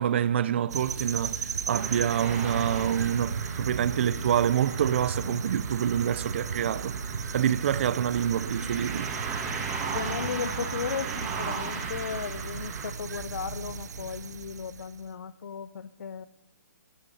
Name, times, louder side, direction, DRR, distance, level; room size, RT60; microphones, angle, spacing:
voice 1, 0.0-9.1, right 9 dB, 40° right, 0.5 m, -27 dB
sound 1, 0.7-15.0, right 5 dB, 70° right, 0.9 m, -35 dB
sound 2, 1.7-12.9, right 5 dB, 15° right, 1.9 m, -37 dB
voice 2, 9.9-16.3, left 6 dB, 80° left, 0.6 m, -35 dB
16.0 x 11.5 x 5.4 m
hypercardioid pair, 165°, 9 cm